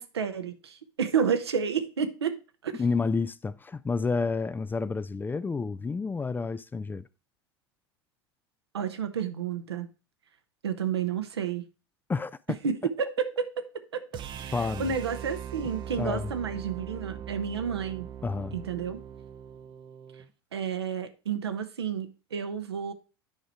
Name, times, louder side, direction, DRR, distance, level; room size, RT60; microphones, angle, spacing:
voice 1, 0.0-2.7 8.7-9.9 10.6-11.6 12.6-14.0 14.4-18.1 18.5-19.0 20.5-22.9, right 7 dB, 80° right, 0.9 m, -31 dB
voice 2, 2.7-7.1 12.1-12.6 14.5-14.9 16.0-16.3 18.2-18.6, left 4 dB, 15° left, 0.4 m, -30 dB
sound 1, 14.1-20.3, right 9 dB, 35° right, 0.6 m, -40 dB
9.5 x 5.0 x 4.4 m
figure-of-eight pair, 75°, 13 cm